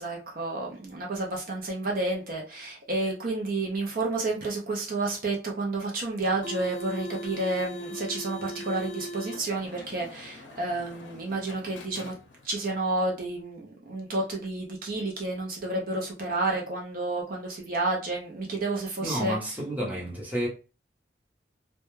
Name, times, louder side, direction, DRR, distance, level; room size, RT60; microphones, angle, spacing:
voice 1, 0.0-12.1 12.4-19.4, right 2 dB, 50° right, 0.5 m, -30 dB
sound 1, 6.2-12.6, equal, 85° left, 0.5 m, -41 dB
voice 2, 19.0-20.5, right 1 dB, 10° right, 0.8 m, -30 dB
2.2 x 2.1 x 3.0 m
head